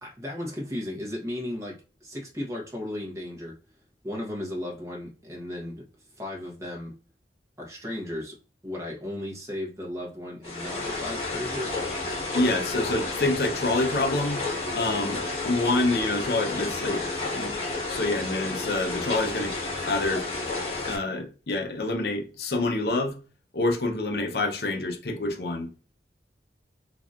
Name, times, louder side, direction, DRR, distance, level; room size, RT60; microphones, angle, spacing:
voice 1, 0.0-3.5 4.0-5.8 6.2-6.9 7.6-8.4 8.6-11.7, left 1 dB, 15° right, 1.0 m, -35 dB
sound 1, 10.4-21.0, left 3 dB, 35° left, 1.6 m, -31 dB
voice 2, 12.3-14.4 14.7-17.0 17.4-17.6 17.9-19.5 19.8-20.3 20.9-23.2 23.5-25.7, left 2 dB, 65° left, 0.7 m, -27 dB
3.8 x 2.8 x 2.4 m
head